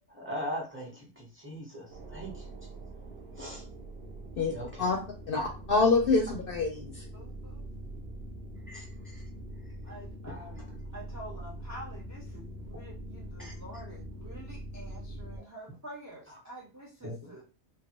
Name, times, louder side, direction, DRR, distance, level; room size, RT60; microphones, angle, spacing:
voice 1, 0.1-2.5 3.3-3.6 4.5-4.9 5.3-5.5 8.7-9.2 10.3-10.5 13.4-13.5 17.0-17.3, equal, 10° right, -3 dB, 0.9 m, -39 dB
sound 1, 1.9-15.4, right 1 dB, 60° right, 0.8 m, -43 dB
voice 2, 5.3-7.1, left 3 dB, 60° left, 2 dB, 0.6 m, -26 dB
voice 3, 7.1-7.7 9.8-17.4, right 1 dB, 30° right, -2 dB, 0.3 m, -48 dB
3.1 x 2.3 x 2.9 m, 0.34 s
omnidirectional pair, 1.3 m